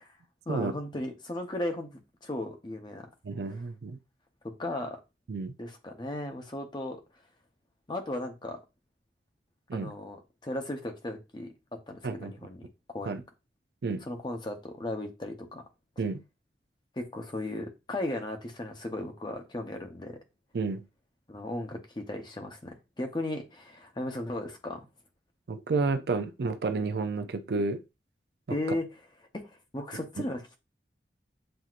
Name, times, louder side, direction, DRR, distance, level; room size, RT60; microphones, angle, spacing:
voice 1, 0.5-3.1 4.6-5.0 5.6-7.0 7.9-8.6 9.7-11.5 11.9-12.6 12.9-13.2 14.1-15.6 17.0-20.2 21.3-24.9 28.5-28.9 29.7-30.6, left 1 dB, 25° left, 0.8 m, -36 dB
voice 2, 3.2-4.0 5.3-5.5 9.7-9.9 12.0-12.3 13.1-13.2 13.8-14.0 16.0-16.2 20.5-20.8 25.5-27.8, right 3 dB, 65° right, 0.4 m, -30 dB
7.6 x 2.8 x 2.4 m
head